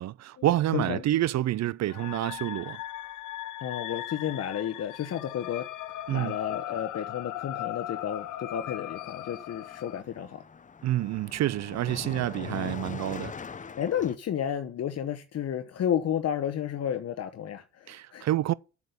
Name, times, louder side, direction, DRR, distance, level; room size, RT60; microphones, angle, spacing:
voice 1, 0.0-2.8 6.1-6.4 10.8-13.3 17.9-18.5, right 14 dB, 60° right, 0.5 m, -28 dB
voice 2, 0.7-1.0 3.6-5.7 6.1-10.4 12.4-12.7 13.8-18.3, left 9 dB, 55° left, 1.0 m, -32 dB
sound 1, 1.9-10.0, left 13 dB, 85° left, 0.9 m, -38 dB
Car passing by, 6.7-6.9 7.2-14.2, left 5 dB, 25° left, 0.7 m, -43 dB
7.7 x 7.4 x 8.1 m
cardioid pair, 90°, 30 cm